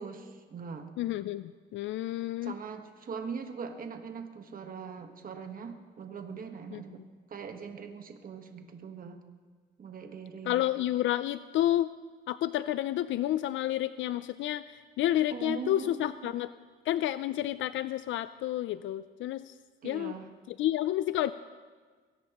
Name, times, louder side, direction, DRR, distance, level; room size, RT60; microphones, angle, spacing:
voice 1, 0.0-0.9 2.4-7.0 7.3-9.2 9.8-10.6 15.3-16.3 19.8-20.2, right 6 dB, 45° right, 5 dB, 1.3 m, -41 dB
voice 2, 1.0-2.5 6.7-6.8 10.5-11.9 12.3-16.5 16.9-19.5 19.8-20.1 20.5-21.3, left 13 dB, 75° left, 14 dB, 0.4 m, -30 dB
22.5 x 17.5 x 3.0 m, 1.5 s
cardioid pair, 90°, 20 cm